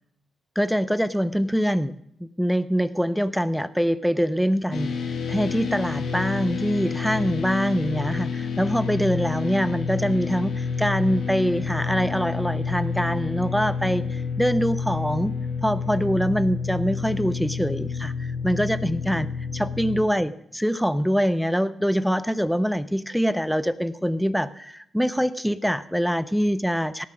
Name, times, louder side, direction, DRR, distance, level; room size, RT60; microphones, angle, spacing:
voice 1, 0.6-1.9 2.2-4.9 5.3-15.3 15.6-19.3 19.5-27.0, equal, ahead, 15 dB, 0.5 m, -24 dB
sound 1, 4.7-20.0, left 5 dB, 70° left, 2.1 m, -29 dB
17.5 x 7.3 x 5.1 m, 0.72 s
cardioid pair, 120°, 0 cm